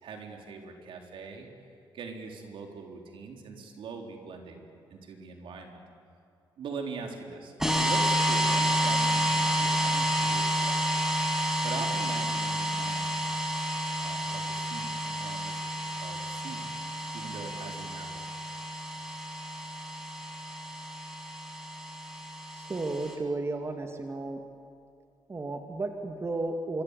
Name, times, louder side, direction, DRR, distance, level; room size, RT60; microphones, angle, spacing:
voice 1, 0.0-1.5 1.9-5.8 6.6-10.8 11.6-13.2 14.0-15.6 15.9-16.7 17.1-18.3, right 5 dB, 75° right, 2 dB, 3.9 m, -42 dB
sound 1, 7.6-23.1, right 1 dB, 5° right, 5.7 m, -30 dB
voice 2, 22.5-24.4 25.3-26.8, right 2 dB, 30° right, 4 dB, 2.4 m, -33 dB
25.5 x 23.0 x 8.4 m, 2.5 s
cardioid pair, 75°, 9 cm